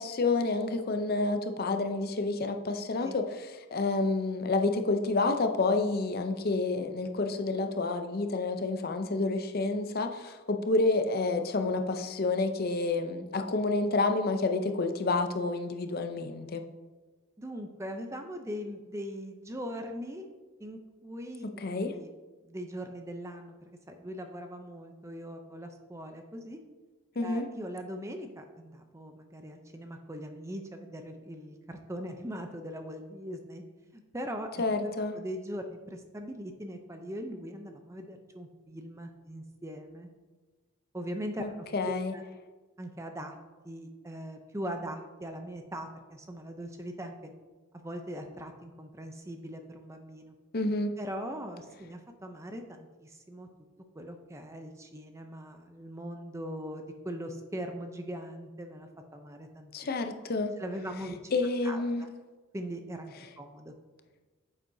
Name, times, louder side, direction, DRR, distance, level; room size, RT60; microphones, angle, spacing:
voice 1, 0.0-16.6 21.6-21.9 27.2-27.5 34.6-35.2 41.4-42.1 50.5-50.9 59.7-60.5 61.3-62.0, left 3 dB, 45° left, 6 dB, 0.6 m, -29 dB
voice 2, 17.4-20.3 20.6-21.4 21.9-22.1 22.4-26.6 27.2-33.6 33.9-40.1 40.9-42.2 42.8-43.4 43.6-47.3 47.7-50.3 51.0-53.5 53.9-59.7 60.6-61.2 61.6-62.1 62.5-63.7, equal, 15° right, 5 dB, 0.5 m, -40 dB
9.3 x 7.3 x 2.7 m, 1.3 s
head